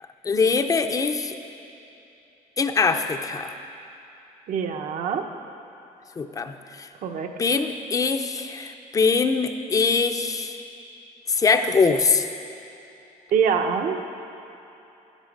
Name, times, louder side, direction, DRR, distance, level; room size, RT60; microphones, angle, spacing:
voice 1, 0.2-1.4 2.6-3.5 6.2-6.9 7.4-10.6 11.3-12.3, left 4 dB, 25° left, 7 dB, 0.6 m, -22 dB
voice 2, 4.5-5.2 7.0-7.3 13.3-14.0, right 6 dB, 60° right, 5 dB, 0.9 m, -24 dB
13.0 x 11.0 x 5.3 m, 2.9 s
cardioid pair, 155°, 15 cm